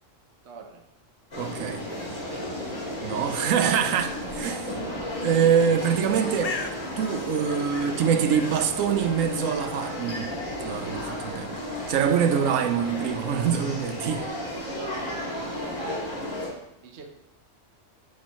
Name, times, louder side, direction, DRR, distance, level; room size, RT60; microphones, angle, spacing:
voice 1, 0.4-0.8 14.6-16.2 16.8-17.1, right 4 dB, 60° right, 1.1 m, -43 dB
sound 1, 1.3-16.5, left 1 dB, 85° left, 2.8 m, -33 dB
voice 2, 1.4-1.8 3.0-4.7 5.2-6.6 7.0-10.3 10.6-11.6 11.9-14.3, right 8 dB, 85° right, 1.1 m, -24 dB
Bird, 6.0-13.6, left 4 dB, 50° left, 0.4 m, -43 dB
9.4 x 6.4 x 3.0 m
omnidirectional pair, 1.3 m